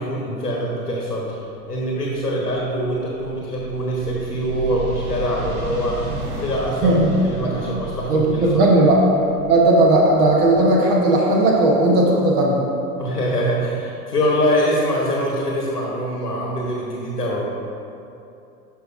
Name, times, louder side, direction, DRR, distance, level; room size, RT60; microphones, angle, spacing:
voice 1, 0.0-1.4 1.7-8.6 13.0-17.4, equal, 85° left, -3 dB, 1.2 m, -24 dB
sound 1, 1.4-12.1, right 2 dB, 65° right, 1.5 m, -33 dB
voice 2, 6.8-7.5 8.1-9.0 9.5-12.6, right 2 dB, 45° right, -1 dB, 1.1 m, -16 dB
13.0 x 5.5 x 2.6 m, 2.7 s
figure-of-eight pair, 90°, 46 cm